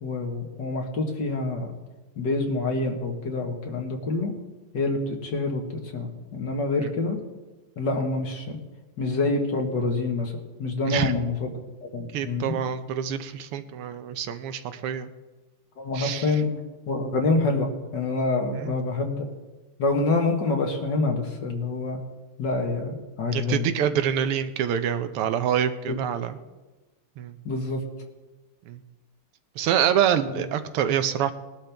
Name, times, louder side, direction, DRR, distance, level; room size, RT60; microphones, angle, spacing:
voice 1, 0.0-1.7 2.2-4.3 4.7-7.2 7.8-8.6 9.0-10.3 10.6-11.5 11.8-12.6 15.8-16.5 16.9-19.3 19.8-22.0 22.4-23.7 25.9-26.0 27.5-27.8 30.3-30.4, left 3 dB, 55° left, 2 dB, 2.0 m, -26 dB
voice 2, 12.1-15.1 15.9-16.4 18.6-18.8 23.3-26.4 27.2-27.4 28.7-28.8 29.6-31.3, right 9 dB, 90° right, 9 dB, 1.7 m, -26 dB
20.0 x 11.5 x 3.5 m, 1.2 s
omnidirectional pair, 2.4 m